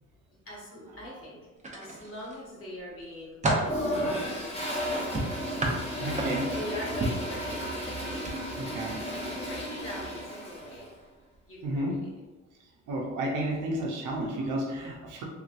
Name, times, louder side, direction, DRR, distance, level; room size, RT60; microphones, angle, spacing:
voice 1, 0.4-5.4 6.0-7.9 8.9-10.9 11.5-12.1, left 1 dB, 45° left, -4 dB, 1.4 m, -42 dB
sound 1, 1.6-2.4 2.9-3.8 5.1-6.6 7.0-7.3 8.2-8.4 8.7-8.9, right 1 dB, 25° right, 0.7 m, -30 dB
Toilet flush, 3.6-10.9, equal, 20° left, 1.1 m, -33 dB
voice 2, 6.0-6.5 8.6-9.0 11.6-12.0 12.9-15.2, right 1 dB, 85° right, 0 dB, 0.8 m, -31 dB
3.5 x 3.1 x 2.5 m, 1.2 s
cardioid pair, 90°, 30 cm